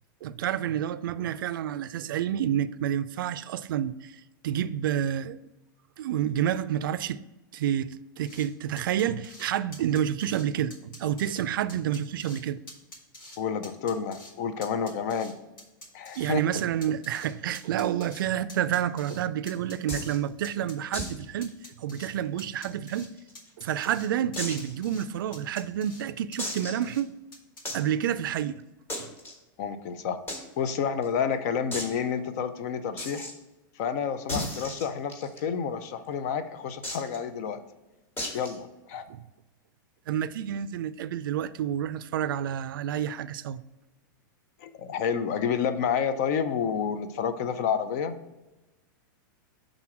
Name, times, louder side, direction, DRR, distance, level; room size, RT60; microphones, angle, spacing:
voice 1, 0.2-4.1 4.4-5.4 6.0-7.2 7.5-12.6 16.2-23.1 23.6-27.1 27.7-28.6 29.0-29.1 39.1-39.2 40.1-43.6, right 10 dB, 80° right, 0.4 m, -29 dB
sound 1, 8.2-8.5 8.8-9.5 9.7-10.5 10.7-11.4 11.7-12.4 12.7-13.4 13.6-14.3 14.6-16.3 16.6-18.2 18.5-19.2 19.5-20.2 20.4-21.1 21.4-22.1 22.4-23.1 23.4-24.1 24.3-25.1 25.3-26.0 26.3-27.0 27.3-27.6, left 1 dB, 85° left, 2.0 m, -47 dB
voice 2, 13.4-15.3 15.9-16.4 29.6-30.2 30.6-33.3 33.8-37.6 38.3-39.0 44.6-48.2, left 7 dB, 50° left, 0.6 m, -29 dB
sound 2, 19.9-20.2 20.9-21.2 21.5-21.6 22.0-22.1 22.7-23.5 24.4-24.7 25.3-25.4 26.4-26.9 27.7-27.9 28.9-29.3 30.3-30.4 30.7-30.8 31.0-31.1 31.7-31.9 33.0-33.3 34.3-35.4 36.8-37.2 38.2-38.6, left 1 dB, 20° left, 1.2 m, -34 dB
6.1 x 3.8 x 5.9 m
supercardioid pair, 150°, 11 cm